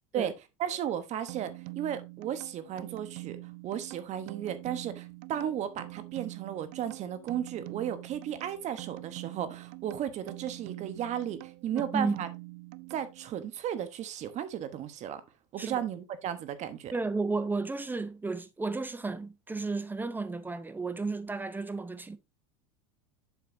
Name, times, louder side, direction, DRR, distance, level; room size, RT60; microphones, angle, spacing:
voice 1, 0.6-3.4 3.6-12.3 12.9-15.2 15.5-16.9, right 10 dB, 45° right, 1.1 m, -34 dB
sound 1, 1.3-13.5, right 24 dB, 60° right, 0.5 m, -45 dB
voice 2, 11.7-12.2 15.6-15.9 16.9-22.2, right 3 dB, 10° right, 0.7 m, -33 dB
8.1 x 6.8 x 2.7 m
supercardioid pair, 100°, 16 cm